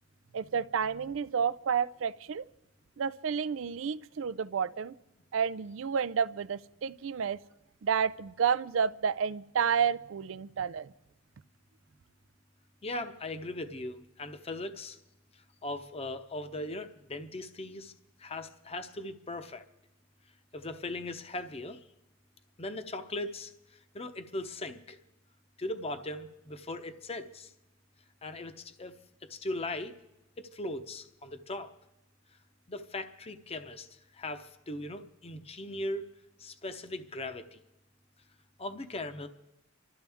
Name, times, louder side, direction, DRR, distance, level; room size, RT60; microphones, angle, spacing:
voice 1, 0.3-2.4 3.0-5.0 5.3-7.4 7.8-10.9, right 7 dB, 75° right, 18 dB, 0.4 m, -30 dB
voice 2, 12.8-15.0 15.6-17.9 18.2-19.6 20.5-21.8 22.6-25.0 25.6-27.5 28.2-28.9 29.2-29.9 30.4-31.7 32.7-36.1 36.4-37.6 38.6-39.3, left 2 dB, 30° left, 9 dB, 0.8 m, -39 dB
28.5 x 13.0 x 3.5 m, 0.95 s
head